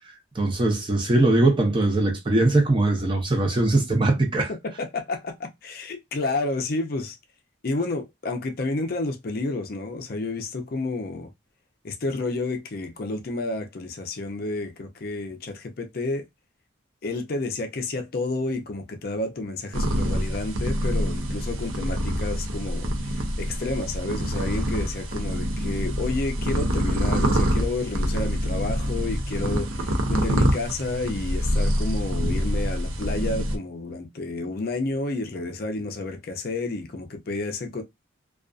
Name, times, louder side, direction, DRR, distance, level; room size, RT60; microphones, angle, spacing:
voice 1, 0.4-4.5, right 2 dB, 25° right, 0.6 m, -21 dB
voice 2, 4.8-7.2 7.6-11.3 11.8-16.2 17.0-37.8, left 2 dB, 45° left, 0.4 m, -30 dB
sound 1, 19.7-33.6, equal, 90° right, 0.6 m, -26 dB
2.4 x 2.3 x 2.3 m
head